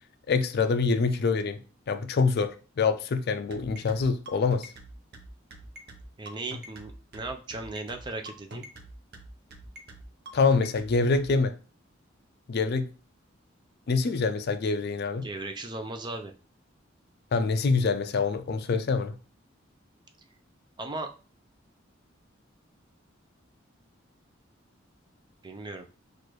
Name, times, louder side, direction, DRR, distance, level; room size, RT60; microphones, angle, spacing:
voice 1, 0.3-1.6 1.9-4.7 10.3-11.6 12.5-12.9 13.9-15.3 17.3-19.2, left 4 dB, 55° left, 0.4 m, -25 dB
sound 1, 3.5-11.3, right 1 dB, 55° right, 0.8 m, -44 dB
voice 2, 6.2-8.7 15.2-16.3 20.8-21.1 25.4-25.9, right 2 dB, 25° right, 0.5 m, -37 dB
6.4 x 2.5 x 3.1 m
head